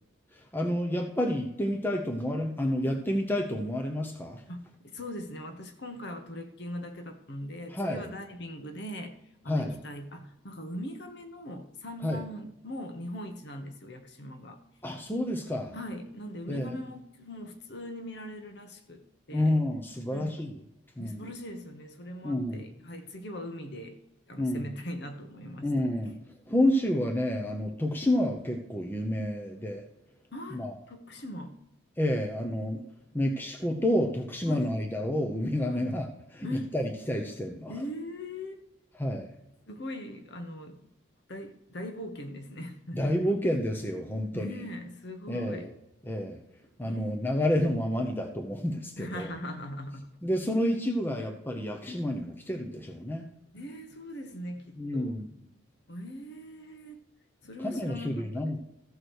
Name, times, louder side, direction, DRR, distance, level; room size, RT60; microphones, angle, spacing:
voice 1, 0.3-4.4 7.7-8.1 9.5-9.7 12.0-12.2 14.8-15.7 16.5-16.8 19.3-20.5 21.0-21.2 22.2-22.7 24.4-24.7 25.6-26.2 26.5-29.8 30.5-30.7 32.0-32.8 33.1-36.1 36.3-37.7 39.0-39.3 42.9-44.6 45.3-45.7 46.1-46.4 46.8-49.3 50.2-53.2 54.8-55.3 57.6-58.6, left 1 dB, 10° left, 0.8 m, -29 dB
voice 2, 4.5-9.2 9.4-14.6 15.7-19.0 19.3-19.6 20.1-20.4 21.0-24.0 24.3-25.7 30.3-30.6 30.9-31.5 34.5-34.7 35.7-35.9 36.4-36.7 37.7-38.6 39.7-40.8 41.3-43.2 44.3-45.7 46.8-47.4 49.0-50.1 53.5-55.1 55.9-57.0 57.4-58.5, equal, 55° left, 1.2 m, -40 dB
14.0 x 4.8 x 6.3 m
head